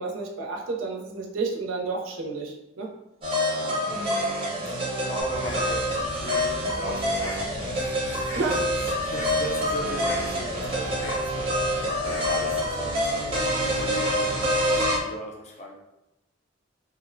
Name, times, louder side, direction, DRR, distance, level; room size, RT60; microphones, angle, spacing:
voice 1, 0.0-2.9 3.6-3.8 8.4-8.6, right 3 dB, 80° right, 0 dB, 0.5 m, -31 dB
sound 1, 3.2-15.0, equal, 25° right, 0.6 m, -27 dB
voice 2, 4.7-15.8, left 1 dB, 35° left, 0 dB, 0.4 m, -38 dB
Bird, 5.2-15.0, left 1 dB, 90° left, 0.5 m, -39 dB
2.5 x 2.0 x 2.5 m, 0.91 s
head